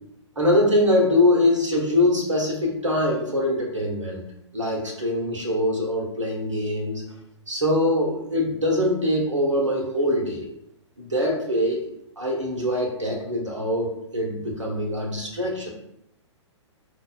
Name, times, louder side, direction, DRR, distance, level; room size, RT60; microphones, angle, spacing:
voice 1, 0.4-4.2 4.5-7.0 7.5-10.5 11.0-11.8 12.2-15.7, left 1 dB, 80° right, -1 dB, 0.8 m, -23 dB
4.9 x 2.1 x 2.3 m, 0.76 s
figure-of-eight pair, 115°, 16 cm